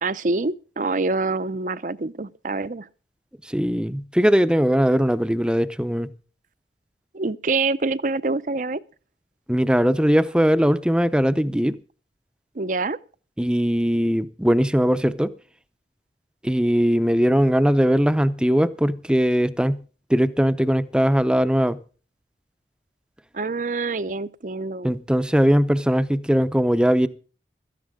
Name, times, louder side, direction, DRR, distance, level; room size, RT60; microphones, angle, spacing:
voice 1, 0.0-2.9 7.1-8.8 12.5-13.0 23.3-24.9, right 3 dB, 45° right, 0.6 m, -26 dB
voice 2, 3.5-6.1 9.5-11.8 13.4-15.3 16.4-19.8 20.1-21.8 24.8-27.1, equal, 5° right, 0.6 m, -20 dB
17.0 x 13.5 x 3.7 m
head